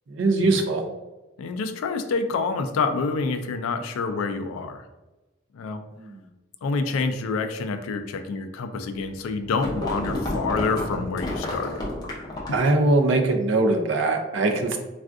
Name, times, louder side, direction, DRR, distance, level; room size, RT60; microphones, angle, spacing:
voice 1, 0.1-0.8 12.5-14.8, right 2 dB, 60° right, 5 dB, 0.4 m, -21 dB
voice 2, 1.4-4.8 5.5-5.8 6.6-11.8, left 4 dB, 90° left, 8 dB, 0.3 m, -27 dB
sound 1, 9.2-12.7, left 1 dB, 20° left, 0.5 m, -30 dB
3.5 x 2.4 x 2.4 m, 1.1 s
head